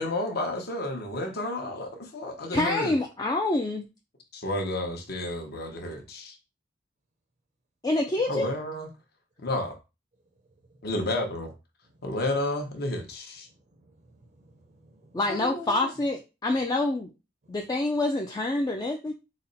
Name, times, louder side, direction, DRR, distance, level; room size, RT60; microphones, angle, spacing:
voice 1, 0.0-2.9 4.3-6.4 8.3-8.9 9.4-9.8 10.8-11.5 12.0-13.5 15.3-15.9, left 1 dB, 55° left, 0.9 m, -31 dB
voice 2, 2.5-3.9 7.8-8.5 15.1-17.1 17.5-19.1, left 2 dB, 20° left, 0.3 m, -27 dB
voice 3, 13.5-15.3 17.4-17.6, right 1 dB, 40° right, 0.5 m, -58 dB
4.1 x 2.1 x 3.9 m
head